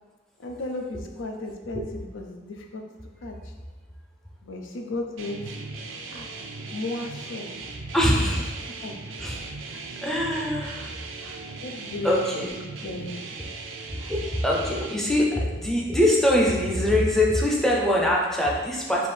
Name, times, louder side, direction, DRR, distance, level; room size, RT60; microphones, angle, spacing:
voice 1, 0.4-2.9 3.2-3.5 4.4-5.5 6.1-6.3 6.7-7.5 8.8-8.9 11.6-13.2, left 2 dB, 75° left, 3 dB, 0.5 m, -34 dB
sound 1, 5.2-15.0, right 3 dB, 80° right, 0.5 m, -38 dB
voice 2, 7.9-8.5 9.2-9.4 10.0-10.9 11.2-11.6 12.0-12.5 13.9-19.1, left 1 dB, ahead, -3 dB, 0.5 m, -23 dB
3.4 x 2.7 x 4.3 m, 1.2 s
head